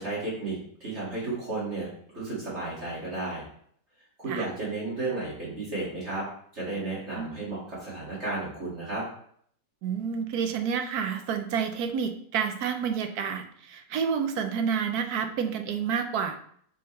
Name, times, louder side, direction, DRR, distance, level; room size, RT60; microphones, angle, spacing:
voice 1, 0.0-1.9 2.1-3.4 4.2-6.2 6.5-9.0, right 2 dB, 40° right, -7 dB, 2.5 m, -33 dB
voice 2, 9.8-16.4, right 7 dB, 65° right, 6 dB, 1.2 m, -29 dB
7.1 x 4.3 x 3.2 m, 0.63 s
omnidirectional pair, 1.9 m